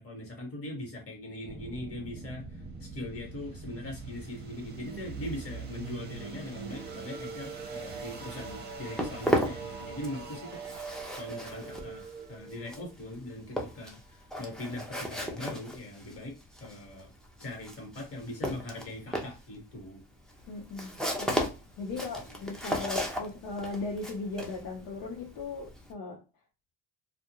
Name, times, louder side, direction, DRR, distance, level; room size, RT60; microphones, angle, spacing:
voice 1, 0.0-10.6 11.2-16.3 16.6-17.1 17.4-20.0 21.9-22.4, left 1 dB, 40° left, 1.3 m, -41 dB
sound 1, 1.4-14.3, right 4 dB, 30° right, 0.8 m, -43 dB
Walk footsteps, 8.5-10.3 10.5-25.9, equal, ahead, 0.6 m, -35 dB
voice 2, 20.5-21.5 21.8-26.2, left 3 dB, 70° left, 0.8 m, -38 dB
2.2 x 2.1 x 2.9 m
supercardioid pair, 85°, 34 cm